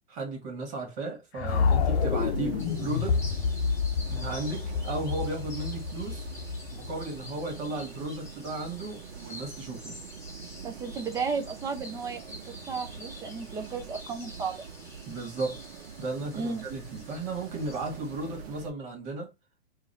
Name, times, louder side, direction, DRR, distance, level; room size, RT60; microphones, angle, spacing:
voice 1, 0.1-3.3 4.1-6.3 6.7-10.0 15.1-15.6 16.0-19.3, right 2 dB, 40° right, 1.7 m, -35 dB
sound 1, 1.4-7.4, left 6 dB, 70° left, 0.6 m, -29 dB
sound 2, 1.5-18.7, right 5 dB, 70° right, 0.9 m, -44 dB
sound 3, 2.6-18.5, left 1 dB, 10° left, 0.9 m, -48 dB
voice 2, 10.6-14.6 16.3-16.6, right 5 dB, 10° right, 0.4 m, -34 dB
3.0 x 2.5 x 4.0 m
hypercardioid pair, 135°, 32 cm